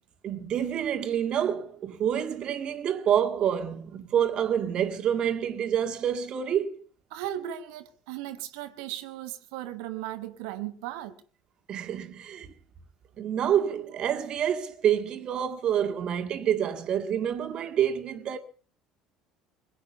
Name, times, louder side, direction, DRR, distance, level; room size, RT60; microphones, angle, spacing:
voice 1, 0.2-6.8 11.7-12.5 13.2-18.4, right 9 dB, 45° right, 1.9 m, -27 dB
voice 2, 7.1-11.1, right 12 dB, 65° right, 1.1 m, -36 dB
21.5 x 9.1 x 6.8 m
figure-of-eight pair, 60°, 2 cm